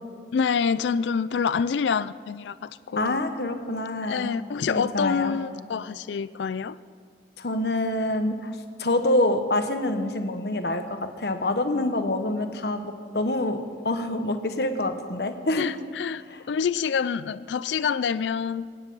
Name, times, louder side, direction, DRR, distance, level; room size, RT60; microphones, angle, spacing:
voice 1, 0.3-3.2 4.1-6.8 15.6-16.2 16.5-18.7, left 6 dB, 80° left, 16 dB, 0.4 m, -27 dB
voice 2, 3.0-4.3 4.7-5.3 7.4-15.7 16.3-16.4, left 1 dB, 65° left, 8 dB, 1.1 m, -26 dB
24.5 x 9.9 x 5.5 m, 2.1 s
head